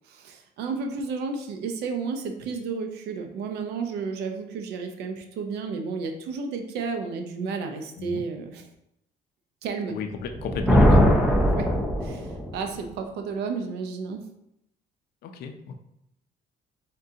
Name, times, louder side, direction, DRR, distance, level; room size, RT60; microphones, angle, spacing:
voice 1, 0.0-8.7 9.6-10.0 11.5-11.7 12.0-14.2, right 5 dB, 80° right, 5 dB, 0.6 m, -32 dB
voice 2, 9.9-11.0 15.2-15.8, left 6 dB, 70° left, 5 dB, 0.5 m, -33 dB
Thunder, 10.3-12.6, equal, 5° right, 0.5 m, -20 dB
3.8 x 3.7 x 2.7 m, 0.80 s
cardioid pair, 110°, 17 cm